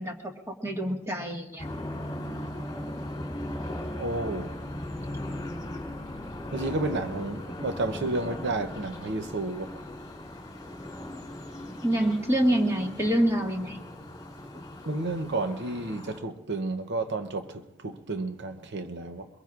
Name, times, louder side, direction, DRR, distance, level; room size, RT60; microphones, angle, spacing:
voice 1, 0.0-1.6 11.8-13.8 14.5-14.6, right 1 dB, 15° right, 1.7 m, -26 dB
sound 1, 1.6-16.2, left 1 dB, 20° left, 3.2 m, -38 dB
voice 2, 4.0-4.6 6.5-9.7 14.8-19.3, right 2 dB, 55° right, 0.8 m, -31 dB
23.5 x 22.0 x 2.5 m
head